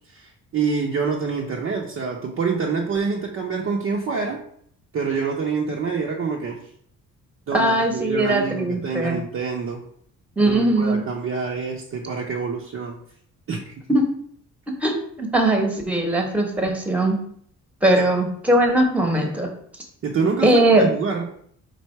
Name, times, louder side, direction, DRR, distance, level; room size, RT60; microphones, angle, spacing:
voice 1, 0.1-4.4 4.9-6.6 7.5-9.8 10.4-13.0 13.5-13.7 20.0-21.3, right 5 dB, 45° right, -1 dB, 0.7 m, -26 dB
voice 2, 7.5-9.2 10.4-11.1 13.9-14.0 14.8-17.2 17.8-19.5 20.4-20.8, right 1 dB, 5° right, 3 dB, 1.0 m, -20 dB
4.6 x 2.5 x 4.4 m, 0.63 s
cardioid pair, 90°, 30 cm